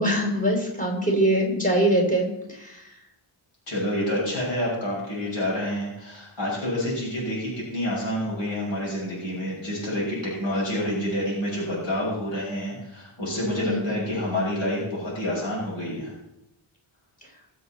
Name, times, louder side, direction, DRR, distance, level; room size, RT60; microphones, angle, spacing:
voice 1, 0.0-2.9 13.6-14.0, right 1 dB, 15° left, -2 dB, 4.0 m, -23 dB
voice 2, 3.7-16.1, left 1 dB, 60° left, -5 dB, 6.0 m, -28 dB
21.0 x 7.2 x 4.3 m, 0.86 s
wide cardioid pair, 165°, 50 cm